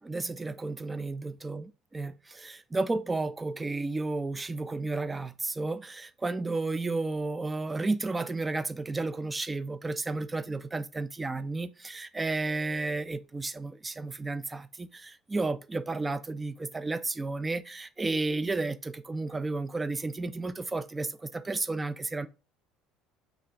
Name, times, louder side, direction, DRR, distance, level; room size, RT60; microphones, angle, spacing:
voice 1, 0.0-22.3, right 3 dB, 20° right, 0.3 m, -32 dB
3.2 x 2.4 x 3.7 m
hypercardioid pair, 65°, 0 cm